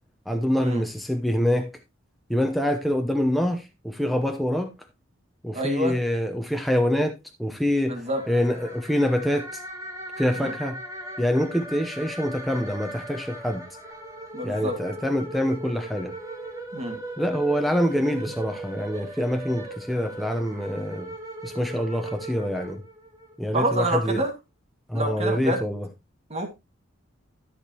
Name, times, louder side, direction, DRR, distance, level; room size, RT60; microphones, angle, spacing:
voice 1, 0.3-1.7 2.3-4.7 5.4-9.6 10.2-10.8 11.2-13.6 14.4-16.1 17.2-21.1 21.4-22.8 23.4-24.2 24.9-25.9, equal, ahead, 0.9 m, -25 dB
voice 2, 5.5-6.0 7.9-8.2 10.4-10.5 14.3-14.8 16.7-17.0 23.5-24.3 24.9-25.6 26.3-26.5, right 1 dB, 35° right, 2.0 m, -27 dB
sound 1, 8.1-23.3, right 1 dB, 20° right, 2.7 m, -38 dB
13.5 x 6.6 x 3.0 m
head